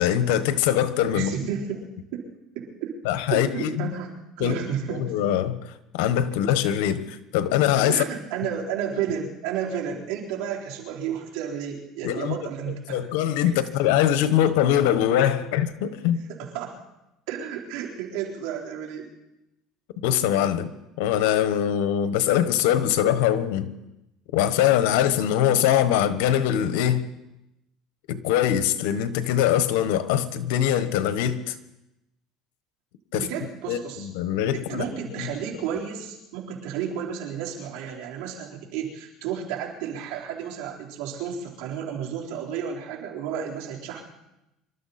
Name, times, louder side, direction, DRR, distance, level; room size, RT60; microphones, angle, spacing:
voice 1, 0.0-1.3 3.0-3.9 4.4-4.6 4.9-8.0 12.0-12.4 12.9-16.2 20.0-20.7 21.0-23.7 24.3-27.1 28.1-31.5 33.1-33.3 33.7-34.9 35.2-35.3, left 10 dB, 85° left, 12 dB, 1.2 m, -23 dB
voice 2, 1.1-2.3 2.5-3.0 3.3-5.1 7.9-13.0 16.4-16.8 17.3-19.1 33.1-34.1 34.5-44.0, right 8 dB, 80° right, -2 dB, 4.0 m, -32 dB
25.5 x 13.0 x 4.3 m, 0.90 s
cardioid pair, 125°, 0 cm